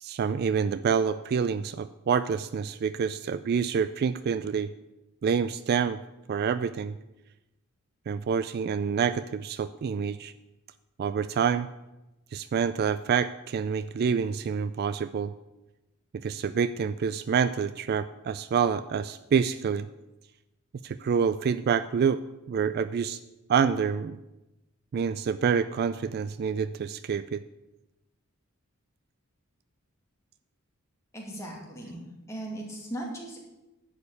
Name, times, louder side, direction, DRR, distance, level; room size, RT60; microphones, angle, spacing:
voice 1, 0.0-4.7 5.2-6.0 6.3-6.9 8.1-10.3 11.0-11.7 12.3-15.3 16.1-19.9 20.8-22.2 22.5-23.2 23.5-24.2 24.9-27.4, right 6 dB, 45° right, 13 dB, 0.3 m, -27 dB
voice 2, 31.1-33.4, right 1 dB, 15° left, -2 dB, 2.4 m, -38 dB
11.0 x 4.9 x 8.2 m, 0.99 s
head